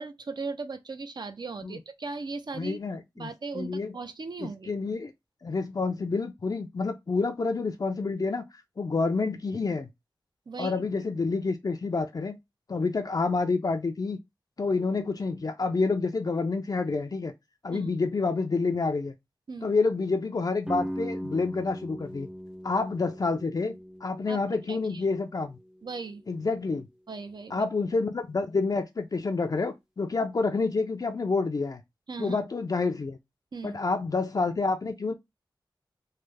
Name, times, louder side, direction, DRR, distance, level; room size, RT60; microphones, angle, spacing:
voice 1, 0.0-2.8 3.2-4.7 10.5-10.8 17.7-17.9 19.5-19.7 24.3-24.4 24.7-25.0 25.8-26.2 27.1-27.6 32.1-32.4 33.5-33.8, right 4 dB, 55° right, 0.5 m, -37 dB
voice 2, 2.5-3.9 4.7-5.1 5.4-8.4 8.8-9.9 10.6-12.4 12.7-14.2 14.6-17.3 17.6-19.1 19.6-22.3 22.6-23.7 24.0-25.6 26.3-26.9 27.5-31.8 32.2-33.2 33.6-35.1, left 4 dB, 45° left, 0.4 m, -28 dB
sound 1, 20.7-26.4, equal, 10° right, 0.5 m, -40 dB
3.2 x 2.0 x 3.3 m
wide cardioid pair, 60°, 9 cm